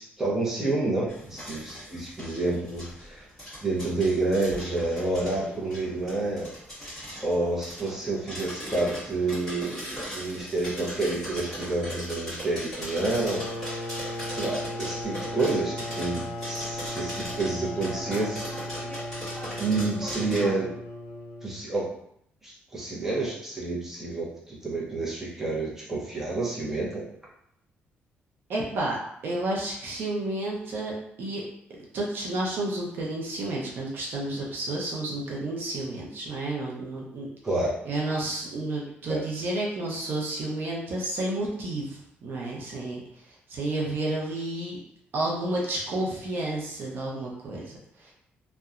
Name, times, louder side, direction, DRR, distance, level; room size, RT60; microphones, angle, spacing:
voice 1, 0.0-3.2 3.6-6.5 7.2-13.9 14.3-18.6 19.6-20.7 21.4-21.8 22.4-27.0 37.4-37.8 39.1-39.2, right 2 dB, 10° right, -6 dB, 0.7 m, -29 dB
sound 1, 1.1-20.5, equal, 10° left, 1.4 m, -39 dB
sound 2, 13.2-21.7, left 1 dB, 60° left, 0.5 m, -36 dB
voice 2, 28.5-29.0 29.2-31.4 31.9-37.3 37.8-43.0 43.5-44.8 45.1-47.7 48.0-48.1, right 2 dB, 55° right, -3 dB, 0.6 m, -31 dB
2.8 x 2.1 x 2.4 m, 0.72 s
cardioid pair, 150°, 4 cm